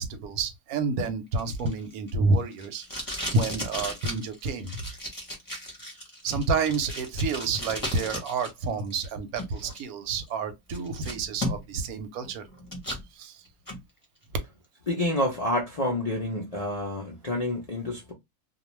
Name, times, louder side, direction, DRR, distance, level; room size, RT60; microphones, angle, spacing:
voice 1, 0.0-4.8 6.2-12.5 13.1-13.5, right 3 dB, 85° right, 1.1 m, -29 dB
Packing tape duct tape, 1.0-8.5 8.8-9.8 10.3-10.4 10.7-11.9 12.2-13.0 13.5-13.8, left 1 dB, 20° left, 0.7 m, -36 dB
voice 2, 14.9-18.1, left 1 dB, 50° left, 0.4 m, -28 dB
2.3 x 2.3 x 3.0 m
omnidirectional pair, 1.5 m